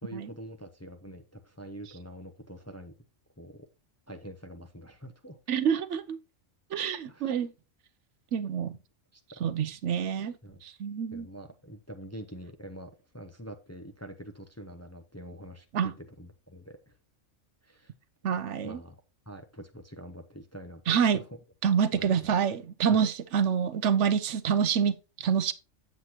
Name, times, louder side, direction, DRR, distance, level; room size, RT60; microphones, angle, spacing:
voice 1, 0.0-2.9 3.4-3.7 4.1-5.4 7.1-7.3 9.1-9.4 10.4-10.6 11.1-17.0 17.6-17.9 18.6-18.9 19.3-21.2 21.9-22.4 22.9-23.1, equal, 15° left, 0.7 m, -45 dB
voice 2, 5.5-6.2 6.7-7.5 8.3-8.7 9.4-10.3 10.6-11.3 15.7-15.9 18.2-18.8 20.9-21.2 21.6-25.5, right 7 dB, 70° right, 1.0 m, -27 dB
8.3 x 7.6 x 2.9 m
omnidirectional pair, 1.3 m